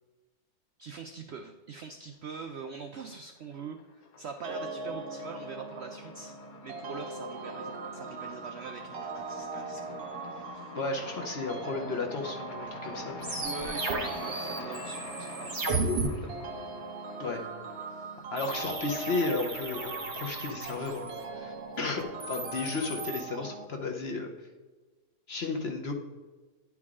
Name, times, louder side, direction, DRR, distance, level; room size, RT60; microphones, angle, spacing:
voice 1, 0.8-6.3 6.6-10.0 10.3-10.7 13.4-16.5 17.9-18.2, right 5 dB, 85° right, 6 dB, 0.5 m, -43 dB
sound 1, 2.3-3.0 3.3-18.5, left 5 dB, 75° left, 1.4 m, -47 dB
sound 2, 4.4-23.7, right 4 dB, 55° right, 0.7 m, -41 dB
voice 2, 10.7-13.3 17.2-17.5 18.3-24.5 25.3-25.9, left 3 dB, 50° left, 3 dB, 0.8 m, -34 dB
sound 3, 13.2-16.1 18.4-21.2 22.0-23.2, right 3 dB, 35° right, 1.0 m, -35 dB
10.0 x 4.7 x 3.6 m, 1.3 s
omnidirectional pair, 1.7 m